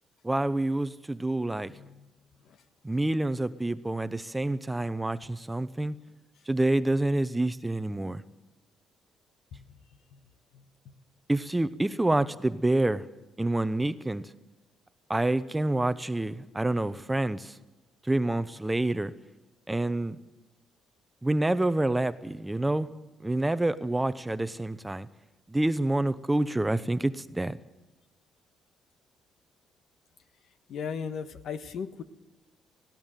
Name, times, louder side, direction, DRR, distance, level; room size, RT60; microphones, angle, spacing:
voice 1, 0.2-1.7 2.8-5.9 6.5-8.2 11.3-13.0 13.4-14.2 15.1-17.5 18.1-19.1 19.7-20.2 21.2-22.9 23.2-25.1 25.5-27.6, right 2 dB, 10° right, 0.8 m, -27 dB
voice 2, 1.7-2.1 2.5-2.6 9.5-9.8 10.1-10.2 10.5-10.9 30.7-32.0, left 6 dB, 70° left, 1.4 m, -38 dB
19.0 x 17.0 x 9.1 m
cardioid pair, 90°, 0 cm